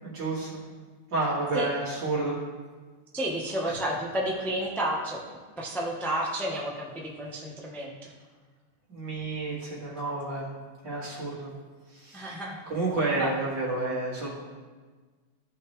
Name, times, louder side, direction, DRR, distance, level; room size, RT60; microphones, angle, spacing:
voice 1, 0.0-0.6 1.1-2.4 3.6-3.8 8.9-10.5 10.8-11.5 11.9-14.3, right 2 dB, 55° right, -7 dB, 3.0 m, -30 dB
voice 2, 3.1-5.2 5.6-8.1 12.1-12.6 13.2-13.3, right 1 dB, ahead, -3 dB, 0.6 m, -31 dB
14.5 x 5.7 x 3.3 m, 1.4 s
omnidirectional pair, 2.4 m